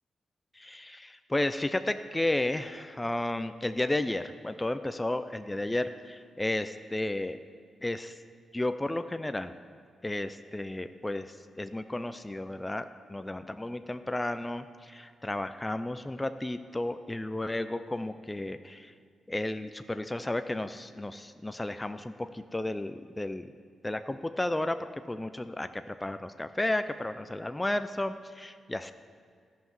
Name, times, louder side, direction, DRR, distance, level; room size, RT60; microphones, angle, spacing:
voice 1, 0.5-7.4 7.8-8.2 8.5-9.5 10.0-18.9 19.3-23.5 23.8-28.9, left 1 dB, 15° left, 10 dB, 0.4 m, -33 dB
13.5 x 5.8 x 7.1 m, 2.1 s
cardioid pair, 105°, 0 cm